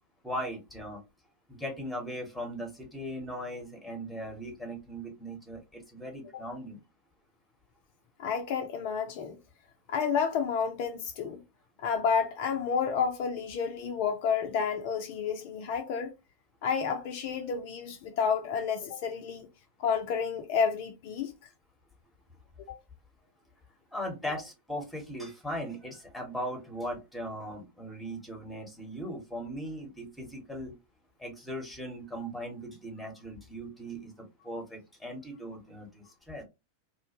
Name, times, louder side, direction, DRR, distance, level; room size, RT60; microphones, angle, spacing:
voice 1, 0.2-1.0 1.5-6.8 23.9-30.8 31.2-36.4, equal, 5° left, 1.0 m, -39 dB
voice 2, 8.2-9.4 9.9-11.4 11.8-16.1 16.6-19.5 19.8-21.3 22.7-22.8, left 6 dB, 50° left, 0.4 m, -30 dB
2.3 x 2.1 x 2.8 m
figure-of-eight pair, 90°, 0 cm